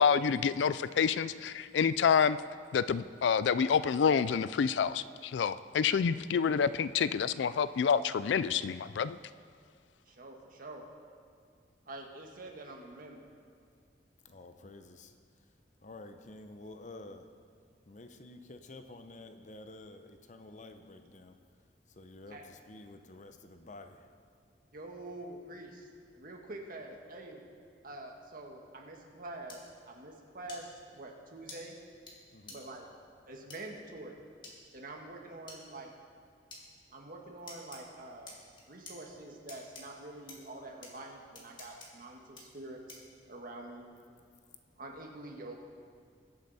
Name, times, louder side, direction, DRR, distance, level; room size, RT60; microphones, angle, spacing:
voice 1, 0.0-2.4 2.7-9.2, left 6 dB, 80° left, 16 dB, 0.4 m, -28 dB
voice 2, 10.1-10.8 11.8-13.3 22.3-22.4 24.7-25.9 26.1-27.4 27.8-31.7 32.5-32.9 33.2-34.2 34.7-35.9 36.9-38.3 38.7-43.0 43.3-43.9 44.8-45.6, right 2 dB, 50° right, 1 dB, 1.6 m, -46 dB
voice 3, 14.2-15.1 15.8-17.3 17.9-21.4 22.0-24.1 32.3-32.6, left 2 dB, 45° left, 8 dB, 0.7 m, -50 dB
sound 1, 29.5-29.6 30.5-30.6 31.5-31.6 32.1-32.2 32.5-32.6 33.5-33.6 34.4-34.5 35.5-35.6 36.5-36.6 37.5-37.8 38.3-38.9 39.5-39.8 40.3-40.4 40.8-40.9 41.3-41.9 42.4-42.5 42.9-43.1, left 2 dB, 25° left, 2.2 m, -47 dB
21.0 x 8.1 x 4.2 m, 2.2 s
head